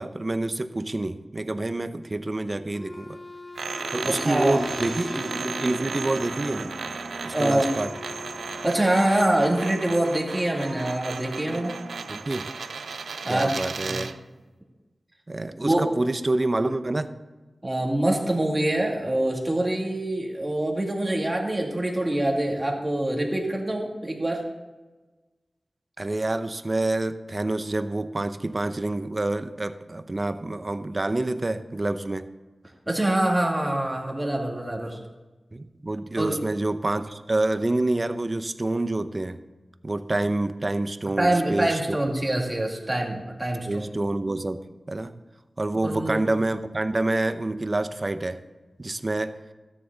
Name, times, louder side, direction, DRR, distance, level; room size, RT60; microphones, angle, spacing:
voice 1, 0.0-3.2 3.9-6.8 7.2-7.9 12.1-12.5 13.3-14.1 15.3-17.1 26.0-32.3 35.5-39.4 39.8-42.0 43.7-45.1 45.6-48.4 48.8-49.4, right 2 dB, 35° right, 10 dB, 0.7 m, -27 dB
sound 1, 2.7-12.0, left 1 dB, ahead, 2.2 m, -42 dB
sound 2, 3.5-14.2, right 5 dB, 90° right, 0.5 m, -35 dB
sound 3, 3.6-9.6, left 1 dB, 60° left, 2.5 m, -39 dB
voice 2, 4.0-4.6 7.3-7.7 8.6-11.8 13.2-14.0 15.6-15.8 17.6-24.4 32.9-35.0 36.2-36.4 41.2-43.9 45.8-46.2, right 1 dB, 20° right, 0 dB, 2.4 m, -25 dB
13.5 x 9.7 x 4.0 m, 1.2 s
wide cardioid pair, 60°, 0 cm